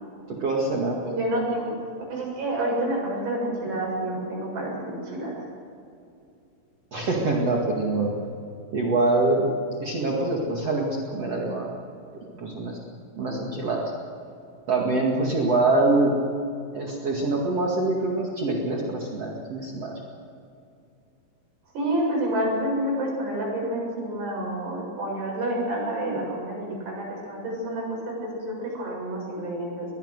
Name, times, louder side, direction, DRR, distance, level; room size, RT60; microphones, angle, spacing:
voice 1, 0.3-1.0 6.9-8.1 8.7-9.5 9.8-11.8 12.3-12.8 13.1-13.9 14.7-16.2 16.7-20.0, right 2 dB, 45° right, -2 dB, 2.8 m, -24 dB
voice 2, 1.0-1.7 2.1-5.4 21.7-29.9, right 1 dB, 90° right, -3 dB, 9.4 m, -28 dB
22.5 x 20.5 x 6.7 m, 2.5 s
omnidirectional pair, 4.7 m